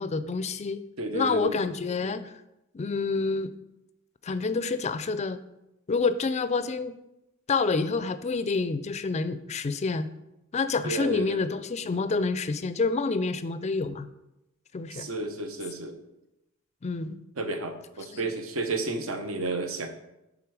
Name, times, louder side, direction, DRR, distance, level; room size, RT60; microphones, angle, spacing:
voice 1, 0.0-0.8 1.1-2.3 2.7-3.5 4.2-5.4 5.9-7.0 7.5-10.1 10.5-14.1 14.7-15.1 16.8-17.2 18.1-18.3, left 4 dB, 35° left, 13 dB, 0.4 m, -28 dB
voice 2, 1.0-1.6 10.8-11.4 14.9-16.0 17.4-19.9, right 2 dB, 75° right, 7 dB, 0.8 m, -32 dB
9.6 x 3.7 x 4.7 m, 0.91 s
head